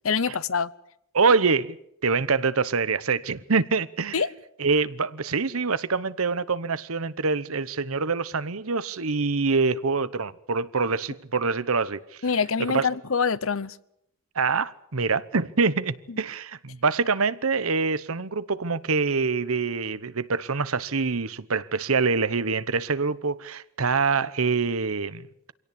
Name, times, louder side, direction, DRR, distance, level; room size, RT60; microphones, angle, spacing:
voice 1, 0.0-0.7 4.1-4.3 12.2-13.8 16.1-16.2, left 5 dB, 70° left, 0.9 m, -25 dB
voice 2, 1.1-1.8 2.0-4.2 4.6-12.0 12.7-12.9 14.3-25.5, right 4 dB, 80° right, 1.0 m, -25 dB
25.0 x 17.5 x 8.5 m
head